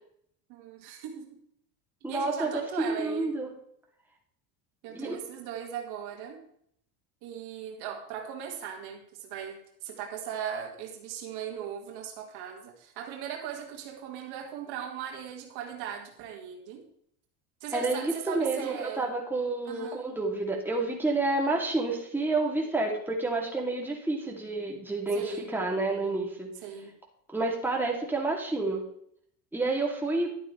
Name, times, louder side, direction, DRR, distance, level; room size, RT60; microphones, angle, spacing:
voice 1, 0.5-1.4 2.1-3.3 4.8-6.4 7.2-16.8 17.6-19.0 19.6-20.1 25.1-25.5 26.6-26.9, right 8 dB, 65° right, 2 dB, 2.1 m, -38 dB
voice 2, 2.0-3.5 4.9-5.2 17.7-26.5 27.3-28.8 29.5-30.3, right 2 dB, 5° right, -2 dB, 2.8 m, -29 dB
11.5 x 8.9 x 3.3 m, 0.69 s
supercardioid pair, 105°, 41 cm